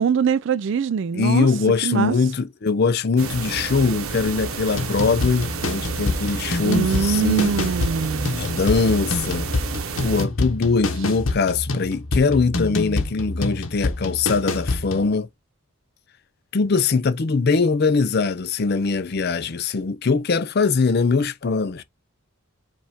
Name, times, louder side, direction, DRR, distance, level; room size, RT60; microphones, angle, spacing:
voice 1, 0.0-1.5 1.8-2.1 6.6-8.3, right 6 dB, 55° right, 0.3 m, -22 dB
voice 2, 1.1-7.5 8.3-9.5 10.0-15.3 16.5-21.8, left 4 dB, 45° left, 0.5 m, -22 dB
sound 1, 3.2-10.3, right 4 dB, 70° right, 0.8 m, -30 dB
sound 2, 4.7-15.1, left 2 dB, 60° left, 1.0 m, -27 dB
5.2 x 2.5 x 3.5 m
head